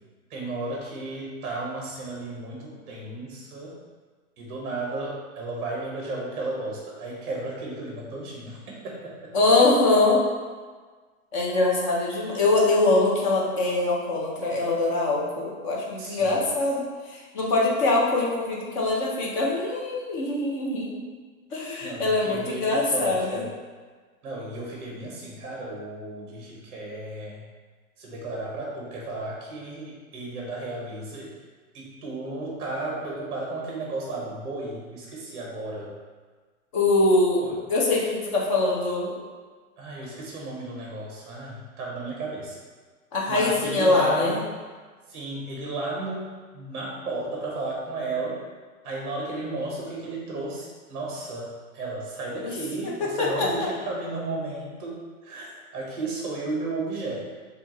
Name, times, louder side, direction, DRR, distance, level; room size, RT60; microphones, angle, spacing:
voice 1, 0.3-3.8 4.4-9.3 16.0-16.4 21.8-23.5 24.2-27.4 28.0-31.3 31.7-35.9 37.4-37.5 39.8-42.6 43.3-44.5 45.1-48.4 48.8-57.2, right 2 dB, 35° right, -3 dB, 1.1 m, -34 dB
voice 2, 9.3-10.2 11.3-21.0 21.5-23.4 36.7-37.4 37.7-39.1 43.1-44.4 52.4-52.5 52.8-53.5, left 2 dB, 25° left, -3 dB, 0.6 m, -23 dB
6.9 x 2.5 x 2.9 m, 1.5 s
hypercardioid pair, 160°, 44 cm